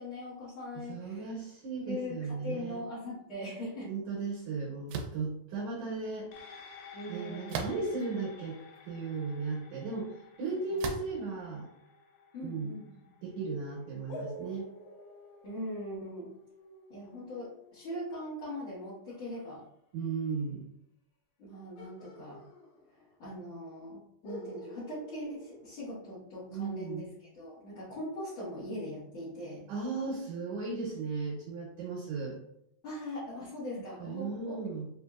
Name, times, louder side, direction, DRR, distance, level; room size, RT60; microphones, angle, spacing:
voice 1, 0.0-1.3 1.8-3.9 6.9-7.6 12.3-12.8 15.4-16.3 16.9-19.6 21.4-22.4 23.2-27.0 27.3-29.7 32.8-34.6, left 1 dB, 50° left, -12 dB, 1.6 m, -40 dB
voice 2, 0.7-2.8 3.8-6.3 7.1-8.6 8.8-11.7 12.4-12.7 13.2-14.7 19.9-20.7 26.5-27.1 29.7-32.4 34.0-34.9, right 4 dB, 70° right, -4 dB, 2.2 m, -36 dB
sound 1, 4.9-5.2 7.5-8.1 8.8-8.9 10.8-11.2, right 5 dB, 85° right, 2.2 m, -37 dB
sound 2, 6.3-15.0 15.4-15.5, left 5 dB, 85° left, 1.6 m, -54 dB
sound 3, 14.1-19.5 21.8-23.2 23.5-23.6 24.2-26.4, right 1 dB, 70° left, 2.0 m, -49 dB
5.3 x 2.6 x 2.3 m, 0.76 s
omnidirectional pair, 3.9 m